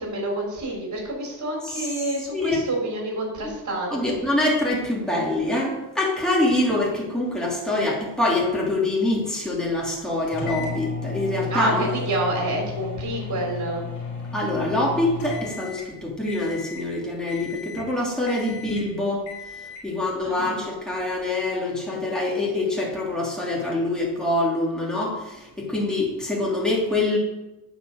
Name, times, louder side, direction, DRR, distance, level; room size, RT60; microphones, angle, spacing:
voice 1, 0.0-4.3 11.5-13.8 20.2-20.8, right 1 dB, 40° right, -1 dB, 3.6 m, -28 dB
voice 2, 3.9-11.8 14.3-19.3 19.8-27.2, left 2 dB, ahead, -4 dB, 2.8 m, -25 dB
sound 1, 10.3-15.9 16.3-16.9 17.3-17.9 18.3-18.9 19.3-19.9, left 5 dB, 90° left, 3.2 m, -34 dB
9.1 x 4.6 x 6.5 m, 1.0 s
supercardioid pair, 65°, 46 cm